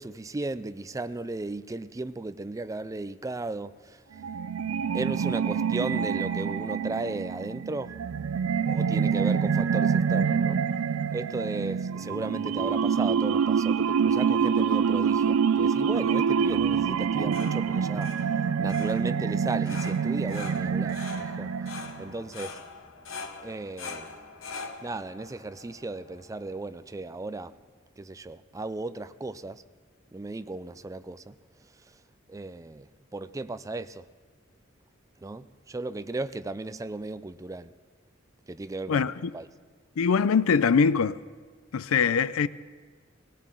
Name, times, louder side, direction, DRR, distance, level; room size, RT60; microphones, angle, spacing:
voice 1, 0.0-4.0 4.9-8.0 8.7-10.6 11.1-18.1 18.6-21.5 22.0-22.6 23.4-24.1 24.8-27.6 28.0-29.6 30.1-31.3 32.3-34.1 35.2-37.7 38.5-39.5, right 2 dB, 15° right, 0.4 m, -35 dB
sound 1, 4.2-22.1, right 6 dB, 90° right, 0.4 m, -26 dB
sound 2, 17.0-26.7, left 4 dB, 70° left, 1.1 m, -43 dB
voice 2, 38.9-39.3 40.0-41.2 41.7-42.5, left 6 dB, 85° left, 0.5 m, -23 dB
18.5 x 17.5 x 3.8 m
head